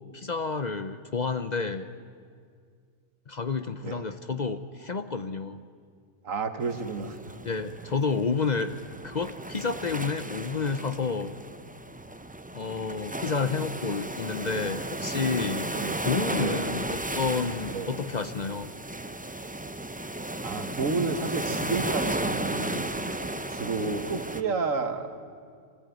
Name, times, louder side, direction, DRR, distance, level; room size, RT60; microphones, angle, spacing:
voice 1, 0.1-1.9 3.3-5.6 7.5-8.8 9.0-11.4 12.5-15.7 16.0-18.7, left 4 dB, 45° left, 10 dB, 0.7 m, -30 dB
voice 2, 6.2-7.2 15.7-16.0 16.3-16.6 17.7-17.9 20.4-22.9 23.5-25.2, right 4 dB, 90° right, 8 dB, 1.7 m, -31 dB
sound 1, 6.6-24.4, right 1 dB, 15° right, 0.3 m, -34 dB
24.5 x 16.0 x 9.3 m, 2.1 s
omnidirectional pair, 1.3 m